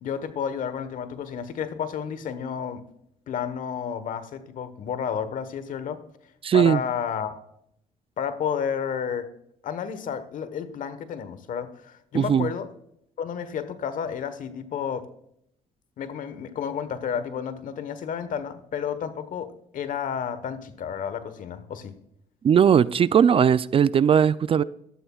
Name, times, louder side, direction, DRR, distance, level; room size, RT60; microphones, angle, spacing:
voice 1, 0.0-2.8 3.3-6.0 6.5-7.4 8.2-9.3 9.6-12.7 13.2-15.1 16.0-21.9, left 7 dB, 65° left, 1.2 m, -31 dB
voice 2, 6.4-6.8 12.1-12.5 22.4-24.6, right 8 dB, 40° right, 0.4 m, -19 dB
16.5 x 12.5 x 2.4 m
supercardioid pair, 80°, 15 cm